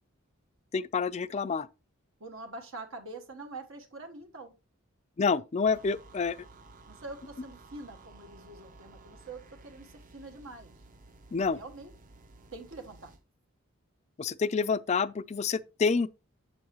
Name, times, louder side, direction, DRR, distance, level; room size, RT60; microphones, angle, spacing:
voice 1, 0.7-1.7 5.2-6.4 11.3-11.6 14.2-16.1, left 5 dB, 30° left, 0.3 m, -28 dB
voice 2, 2.2-4.5 6.9-10.8 11.4-11.9 12.5-13.1, right 2 dB, 75° right, 1.2 m, -45 dB
sound 1, 5.7-13.2, right 2 dB, 40° right, 0.7 m, -54 dB
7.8 x 7.1 x 3.0 m
head